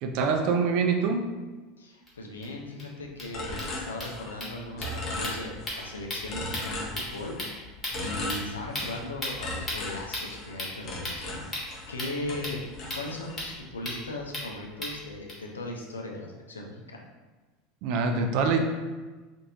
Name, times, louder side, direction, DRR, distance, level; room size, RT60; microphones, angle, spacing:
voice 1, 0.0-1.2 17.8-18.6, right 5 dB, 55° right, 4 dB, 0.4 m, -25 dB
voice 2, 1.8-17.0, left 2 dB, 80° left, 0 dB, 0.4 m, -38 dB
sound 1, 2.1-2.2 2.4-2.5 2.8-2.9 3.1-15.3, left 1 dB, 25° left, 1.2 m, -38 dB
sound 2, 3.3-4.5 4.8-5.9 6.3-7.5 7.9-9.0 9.4-12.0 12.3-13.4, left 1 dB, 45° left, 0.8 m, -36 dB
3.0 x 2.5 x 2.7 m, 1.3 s
figure-of-eight pair, 75°, 0 cm